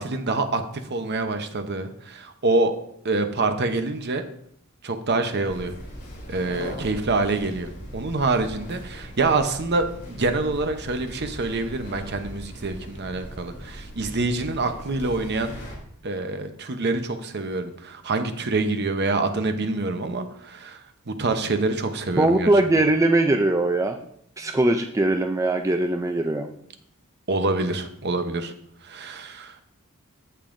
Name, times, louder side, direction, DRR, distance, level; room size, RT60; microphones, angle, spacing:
voice 1, 0.0-2.7 3.0-4.2 4.8-5.7 6.3-15.5 16.0-20.8 21.1-22.5 27.3-28.5 28.8-29.5, right 3 dB, 50° right, 7 dB, 0.8 m, -26 dB
sound 1, 5.4-15.8, equal, 40° left, 3.0 m, -39 dB
voice 2, 22.2-24.0 24.4-26.5, right 2 dB, 15° right, 4 dB, 0.4 m, -21 dB
15.5 x 5.5 x 2.6 m, 0.69 s
head